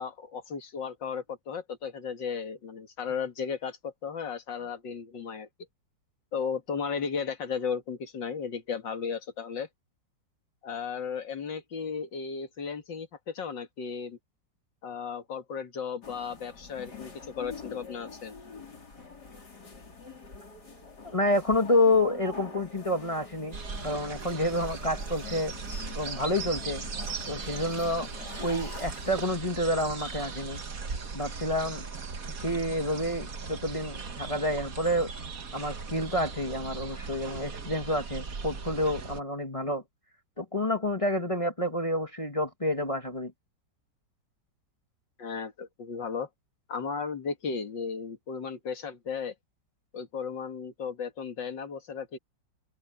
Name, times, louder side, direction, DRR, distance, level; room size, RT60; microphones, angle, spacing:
voice 1, 0.0-5.5 6.3-9.7 10.6-14.2 14.8-18.3 45.2-46.3 46.7-49.3 49.9-52.2, left 6 dB, 80° left, 2.6 m, -35 dB
sound 1, 16.0-29.2, left 5 dB, 65° left, 4.4 m, -46 dB
voice 2, 21.0-23.6 23.8-25.5 26.0-26.8 27.3-28.1 28.4-30.6 31.1-31.9 32.4-35.1 35.5-39.8 40.4-43.3, left 1 dB, 20° left, 1.7 m, -28 dB
sound 2, 23.5-39.2, right 4 dB, 50° right, 2.0 m, -38 dB
open air
omnidirectional pair, 1.9 m